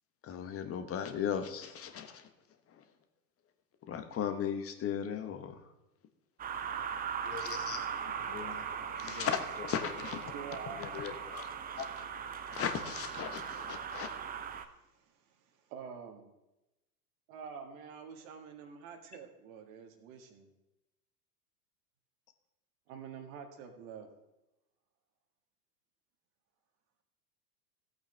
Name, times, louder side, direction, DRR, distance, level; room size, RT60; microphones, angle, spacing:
voice 1, 0.2-2.3 2.7-2.8 3.9-5.5 7.4-7.8 8.9-10.3 10.9-12.0 12.5-14.1, left 8 dB, 30° left, 7 dB, 1.2 m, -37 dB
sound 1, 6.4-14.7, right 7 dB, 20° right, 0.6 m, -39 dB
voice 2, 7.2-7.8 8.3-8.6 9.0-9.3 10.7-11.2, left 9 dB, 70° left, 8 dB, 1.3 m, -47 dB
voice 3, 10.3-10.8 14.8-15.4 15.7-16.3 17.3-20.5 22.9-24.1, right 6 dB, 55° right, 5 dB, 1.9 m, -47 dB
15.5 x 8.3 x 3.4 m, 0.96 s
hypercardioid pair, 90°, 49 cm